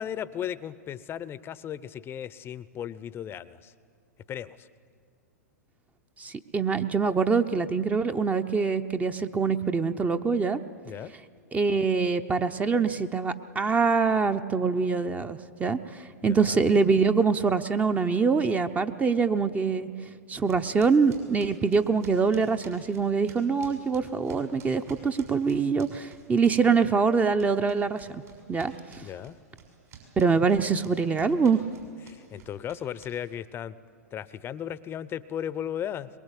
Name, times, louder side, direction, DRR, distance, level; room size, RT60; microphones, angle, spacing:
voice 1, 0.0-3.7 4.3-4.7 10.8-11.1 16.2-16.6 29.0-29.4 32.1-33.7 34.1-36.1, left 9 dB, 25° left, 17 dB, 0.7 m, -36 dB
voice 2, 6.2-10.6 11.5-19.9 20.3-28.1 28.5-29.1 30.2-31.6, right 5 dB, 15° right, 9 dB, 0.8 m, -24 dB
Footsteps running, 20.4-26.8 27.1-33.4, right 7 dB, 70° right, 6.6 m, -51 dB
22.5 x 21.0 x 8.2 m, 2.1 s
hypercardioid pair, 105°, 9 cm